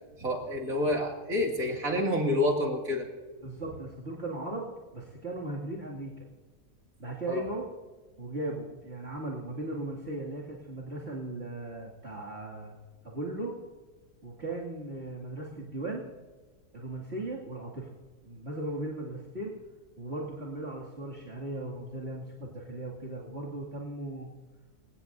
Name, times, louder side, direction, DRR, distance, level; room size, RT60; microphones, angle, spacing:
voice 1, 0.2-3.1 7.3-7.4, left 1 dB, 60° right, 0 dB, 2.8 m, -28 dB
voice 2, 3.4-4.6 4.9-6.2 7.0-7.6 8.2-12.7 13.0-13.5 14.2-16.0 16.7-17.9 18.2-19.6 20.0-24.3, right 2 dB, 40° right, -6 dB, 2.7 m, -37 dB
26.5 x 18.0 x 2.7 m, 1.3 s
omnidirectional pair, 1.6 m